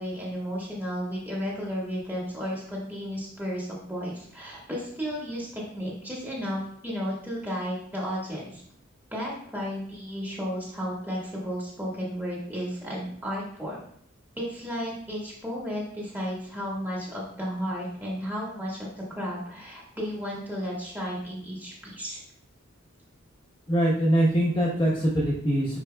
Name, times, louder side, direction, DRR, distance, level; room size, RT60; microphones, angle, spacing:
voice 1, 0.0-8.6 9.1-13.8 14.4-22.2, equal, 10° right, -5 dB, 1.7 m, -33 dB
voice 2, 23.7-25.8, right 1 dB, 20° left, -5 dB, 1.1 m, -23 dB
9.7 x 4.5 x 2.3 m, 0.64 s
head